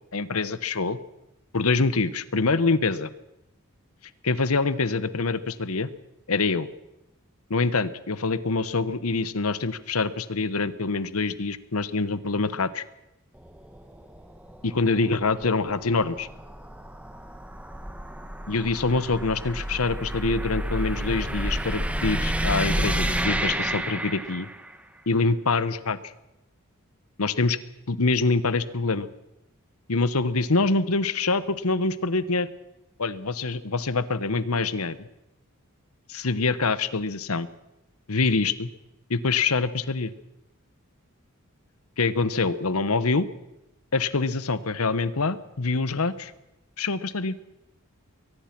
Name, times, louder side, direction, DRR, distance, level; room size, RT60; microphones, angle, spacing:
voice 1, 0.1-1.0 1.5-3.1 4.2-5.9 6.3-6.7 7.5-12.8 14.6-16.3 18.5-24.5 25.1-26.0 27.2-27.6 27.9-29.1 29.9-32.5 33.0-35.1 36.1-37.5 38.1-38.7 39.1-40.1 42.0-43.3 43.9-46.3 46.8-47.4, left 3 dB, 80° left, 14 dB, 1.1 m, -25 dB
sound 1, 13.4-24.8, right 1 dB, 5° right, 1.3 m, -30 dB
22.5 x 19.0 x 6.0 m, 0.90 s
head